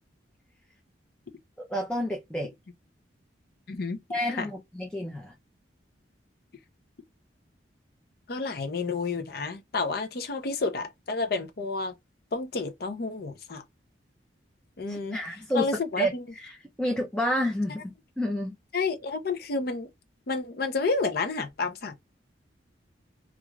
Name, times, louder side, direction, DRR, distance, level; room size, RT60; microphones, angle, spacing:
voice 1, 1.7-2.5 4.1-5.3 14.9-15.6 16.0-17.8 18.2-18.5, equal, 5° left, 0.5 m, -29 dB
voice 2, 3.7-4.0 4.3-4.5 8.3-11.9 12.3-13.6 14.8-15.2 15.5-16.2 18.7-19.9 20.3-21.9, left 4 dB, 50° left, 0.5 m, -30 dB
2.4 x 2.3 x 3.0 m
head